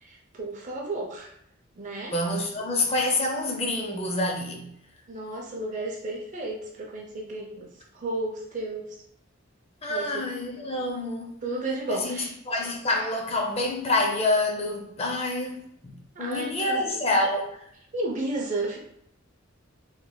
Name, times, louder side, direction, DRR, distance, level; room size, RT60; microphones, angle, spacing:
voice 1, 0.0-1.3 1.8-2.1 5.1-9.0 9.9-10.3 11.4-12.3 16.2-17.0 17.9-18.8, right 2 dB, 40° right, 0.5 m, -33 dB
voice 2, 2.1-4.7 9.8-11.3 11.9-17.6, left 2 dB, 30° left, 0.5 m, -27 dB
3.8 x 3.1 x 2.2 m
head